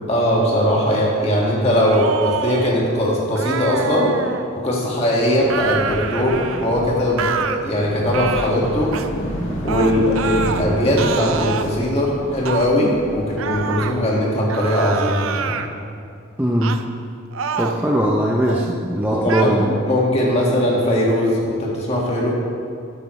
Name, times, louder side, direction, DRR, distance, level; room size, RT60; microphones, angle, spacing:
voice 1, 0.1-4.2 4.5-8.9 9.6-15.6 19.1-22.3, equal, 30° left, -3 dB, 1.8 m, -20 dB
sound 1, 1.8-2.7 3.4-4.5 5.5-6.7 7.2-7.6 8.1-8.5 8.9-9.1 9.7-10.6 11.0-11.7 12.5-12.7 13.4-13.9 14.5-15.7 16.6-16.8 17.3-17.9 18.4-18.7 19.3-19.4, right 6 dB, 75° right, 0.5 m, -27 dB
sound 2, 5.4-13.7, equal, 60° left, 1.8 m, -31 dB
voice 2, 16.4-16.8 17.6-19.7, right 1 dB, 10° right, -2 dB, 0.5 m, -19 dB
12.0 x 9.2 x 3.2 m, 2.3 s
head